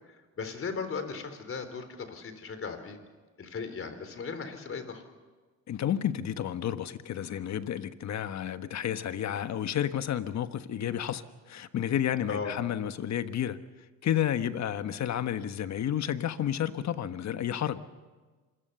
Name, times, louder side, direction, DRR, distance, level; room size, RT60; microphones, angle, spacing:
voice 1, 0.1-3.0 3.4-5.0 12.3-12.6, left 5 dB, 45° left, 4.0 m, -37 dB
voice 2, 5.7-13.6 14.0-17.8, left 10 dB, 65° left, 1.3 m, -31 dB
26.5 x 21.0 x 6.9 m
cardioid pair, 90°, 30 cm